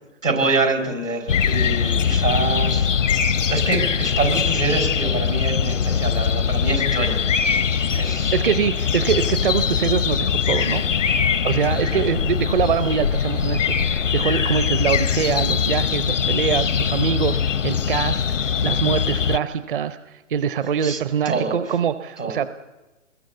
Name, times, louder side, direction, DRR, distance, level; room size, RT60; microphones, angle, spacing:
voice 1, 0.2-2.9 3.5-7.2 7.9-8.3 11.9-12.0 20.8-21.0 21.3-21.6 22.2-22.5, right 3 dB, 80° right, 5 dB, 5.5 m, -25 dB
sound 1, 1.3-19.4, left 7 dB, 70° left, 0.8 m, -22 dB
voice 2, 8.3-10.8 11.4-18.2 18.6-22.5, right 7 dB, 45° right, 13 dB, 0.8 m, -24 dB
27.0 x 21.5 x 8.2 m, 1.1 s
figure-of-eight pair, 125°, 38 cm